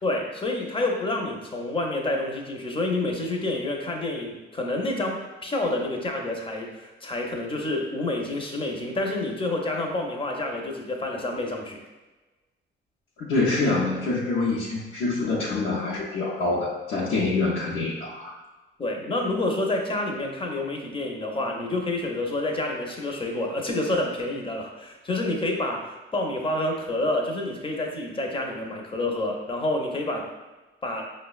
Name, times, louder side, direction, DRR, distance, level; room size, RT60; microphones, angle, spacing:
voice 1, 0.0-11.8 18.8-30.3 30.8-31.0, left 2 dB, 25° left, 1 dB, 0.6 m, -28 dB
voice 2, 13.2-18.3, left 3 dB, 75° left, -6 dB, 0.6 m, -26 dB
4.9 x 2.1 x 2.3 m, 1.2 s
cardioid pair, 90°, 20 cm